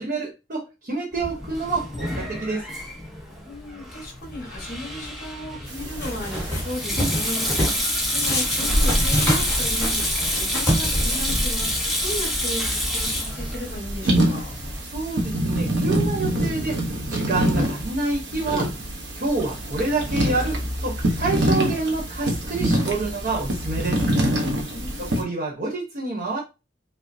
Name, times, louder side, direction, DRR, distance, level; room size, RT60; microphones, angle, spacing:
voice 1, 0.0-2.6 14.8-18.7 19.1-24.0 25.0-26.4, right 3 dB, 45° right, 0.9 m, -28 dB
Sink (filling or washing), 1.1-14.8, equal, ahead, 0.9 m, -28 dB
voice 2, 3.4-14.5 24.6-25.3, left 1 dB, 50° left, 1.4 m, -36 dB
sound 1, 5.7-25.2, right 1 dB, 70° right, 0.9 m, -26 dB
sound 2, 6.0-6.6 7.0-7.8 8.2-11.4, equal, 15° left, 1.3 m, -26 dB
5.2 x 2.0 x 2.7 m
head